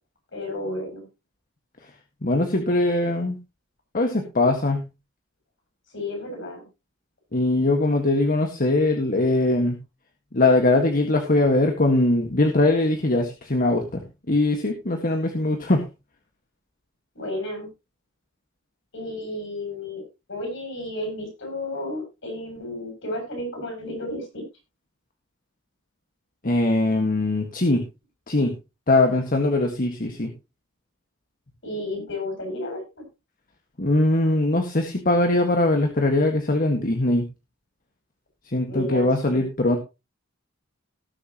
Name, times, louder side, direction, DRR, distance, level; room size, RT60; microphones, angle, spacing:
voice 1, 0.3-1.0 5.9-6.7 17.1-17.7 18.9-20.0 20.3-24.4 31.6-33.0 38.7-39.5, left 1 dB, 65° left, 3 dB, 7.9 m, -32 dB
voice 2, 2.2-3.4 3.9-4.8 7.3-9.8 10.3-14.0 14.3-15.9 26.4-27.8 28.3-28.5 28.9-30.3 33.8-37.3 38.5-39.8, left 2 dB, 45° left, 4 dB, 1.8 m, -21 dB
18.5 x 7.9 x 3.0 m, 0.26 s
head